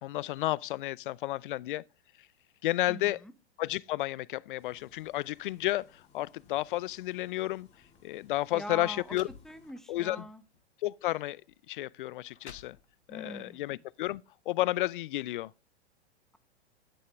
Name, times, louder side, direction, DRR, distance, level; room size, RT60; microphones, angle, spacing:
voice 1, 0.0-1.8 2.6-3.2 3.6-5.9 6.1-7.7 8.0-9.3 9.9-10.3 10.8-11.4 11.7-12.8 13.1-14.2 14.5-15.5, left 16 dB, 50° left, 0.5 m, -32 dB
voice 2, 2.9-3.3 8.5-9.2 9.4-10.4 13.1-13.8, equal, ahead, 0.8 m, -43 dB
sound 1, 4.6-9.7, left 5 dB, 20° left, 2.7 m, -63 dB
sound 2, 7.9-8.0 8.7-8.8 9.1-10.0 10.5-10.7 11.5-11.6 12.1-13.2, left 7 dB, 75° left, 1.2 m, -52 dB
11.0 x 9.5 x 3.6 m
figure-of-eight pair, 105°, 34 cm